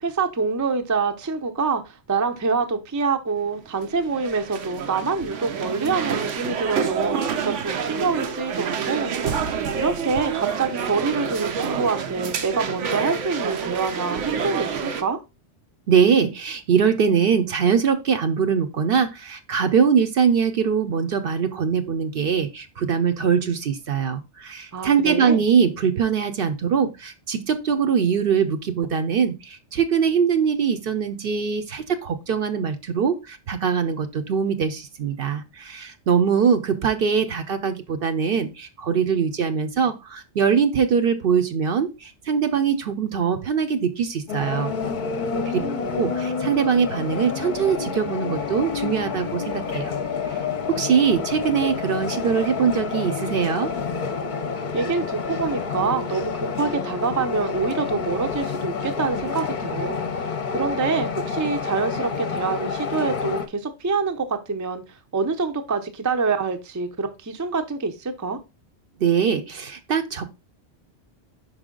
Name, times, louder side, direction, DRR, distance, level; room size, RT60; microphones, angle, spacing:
voice 1, 0.0-9.1 9.7-15.2 24.7-25.4 45.3-46.0 54.7-64.8 65.1-68.4, right 4 dB, 20° right, 0.5 m, -26 dB
sound 1, 3.5-15.0, right 7 dB, 90° right, 1.0 m, -28 dB
voice 2, 15.9-44.7 45.9-49.9 50.7-53.7 69.0-70.2, right 6 dB, 60° right, 0.8 m, -22 dB
sound 2, 44.3-63.5, left 5 dB, 50° left, 0.7 m, -29 dB
5.4 x 4.9 x 3.7 m
omnidirectional pair, 1.2 m